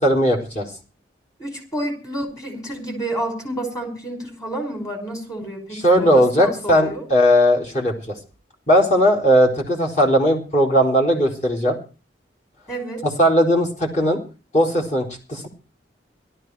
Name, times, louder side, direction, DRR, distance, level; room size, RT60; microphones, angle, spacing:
voice 1, 0.0-0.7 5.7-8.2 8.7-11.8 13.2-14.2 14.5-15.5, equal, 40° left, 0 dB, 4.1 m, -18 dB
voice 2, 1.4-7.0 12.7-13.0, right 1 dB, 20° left, 3 dB, 5.4 m, -30 dB
17.0 x 13.0 x 4.7 m, 0.35 s
head